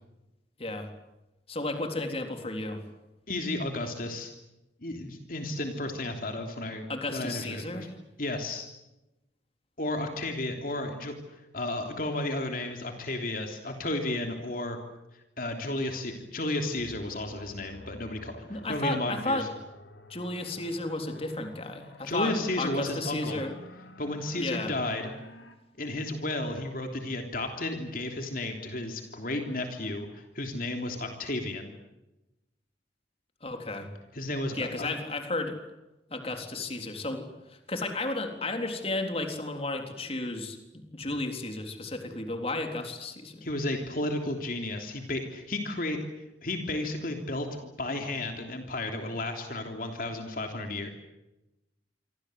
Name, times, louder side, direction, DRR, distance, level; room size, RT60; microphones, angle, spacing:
voice 1, 0.6-0.9 1.5-2.8 6.9-7.9 18.5-19.5 20.1-23.5 24.4-24.7 33.4-33.9 34.5-35.6 36.1-43.5, left 2 dB, 35° left, 5 dB, 3.8 m, -33 dB
voice 2, 3.3-4.3 4.8-7.9 8.2-8.7 9.8-14.8 15.4-18.4 18.7-19.4 22.0-23.4 24.0-25.1 25.8-31.7 34.1-34.9 43.4-46.0 46.4-50.9, left 2 dB, 50° left, 4 dB, 3.3 m, -33 dB
sound 1, 16.8-25.6, left 2 dB, 90° left, 3.5 m, -50 dB
28.0 x 25.5 x 8.0 m, 0.96 s
head